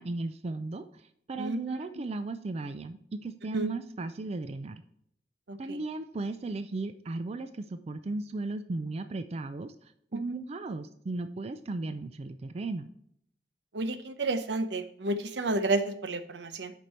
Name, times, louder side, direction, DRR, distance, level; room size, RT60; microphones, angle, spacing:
voice 1, 0.0-4.8 5.6-12.9, right 3 dB, 35° right, 10 dB, 0.4 m, -36 dB
voice 2, 1.4-2.1 3.5-3.7 5.5-5.8 13.7-16.7, right 2 dB, 80° right, 10 dB, 0.8 m, -31 dB
7.5 x 5.3 x 4.2 m, 0.69 s
head